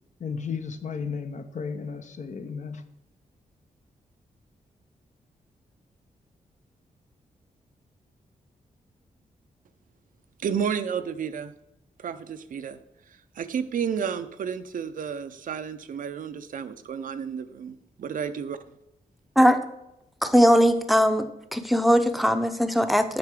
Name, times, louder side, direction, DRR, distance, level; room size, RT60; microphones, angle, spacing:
voice 1, 0.2-2.8, left 5 dB, 55° left, 9 dB, 0.6 m, -34 dB
voice 2, 10.4-11.5 12.0-12.8 13.4-18.6, right 7 dB, 65° right, 11 dB, 0.5 m, -31 dB
voice 3, 20.2-21.3 21.5-23.2, equal, ahead, 8 dB, 0.6 m, -20 dB
7.7 x 5.7 x 3.6 m, 0.87 s
cardioid pair, 75°, 15 cm